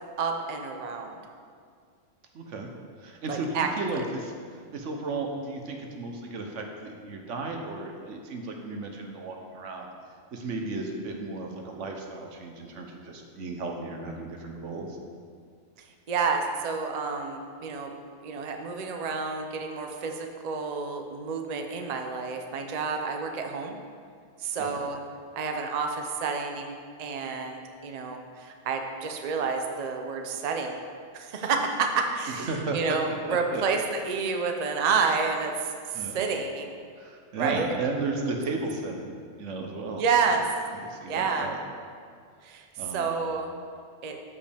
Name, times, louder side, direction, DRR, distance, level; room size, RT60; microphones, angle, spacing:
voice 1, 0.2-1.2 3.3-3.7 16.1-17.9 18.2-23.8 24.4-25.0 25.3-30.8 31.1-36.8 37.4-37.7 40.0-40.4 41.1-41.5 42.4-43.5 44.0-44.2, right 5 dB, 40° right, 3 dB, 0.7 m, -29 dB
voice 2, 2.3-2.7 3.0-4.3 4.7-9.9 10.3-15.0 24.6-24.7 32.4-32.8 33.3-33.6 35.9-36.2 37.0-40.0 40.8-41.6 42.8-43.2, right 3 dB, 80° right, 2 dB, 1.3 m, -34 dB
13.0 x 5.3 x 3.4 m, 2.1 s
omnidirectional pair, 1.3 m